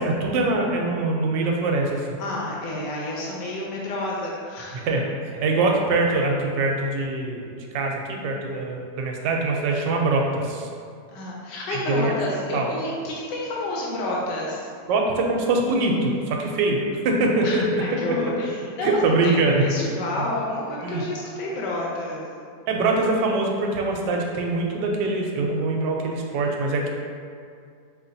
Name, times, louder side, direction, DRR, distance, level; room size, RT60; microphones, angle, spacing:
voice 1, 0.0-2.2 4.8-10.7 11.7-12.7 14.9-17.6 18.1-18.2 18.8-19.6 20.8-21.0 22.7-26.9, right 2 dB, 90° right, 0 dB, 1.3 m, -23 dB
voice 2, 2.2-4.8 11.1-14.7 17.4-19.3 19.6-22.3, left 1 dB, 90° left, -4 dB, 1.3 m, -30 dB
4.9 x 2.9 x 2.6 m, 2.3 s
omnidirectional pair, 1.9 m